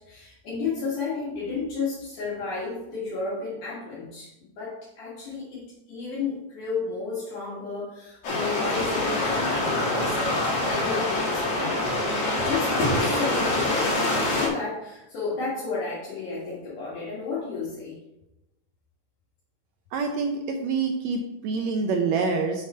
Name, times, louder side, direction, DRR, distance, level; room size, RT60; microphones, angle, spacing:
voice 1, 0.0-12.1 12.4-18.0, left 4 dB, 70° left, -8 dB, 3.3 m, -32 dB
sound 1, 8.2-14.5, left 2 dB, 55° left, 2.7 m, -25 dB
voice 2, 19.9-22.6, right 4 dB, 75° right, 3 dB, 1.7 m, -26 dB
6.8 x 6.6 x 4.3 m, 0.92 s
omnidirectional pair, 3.8 m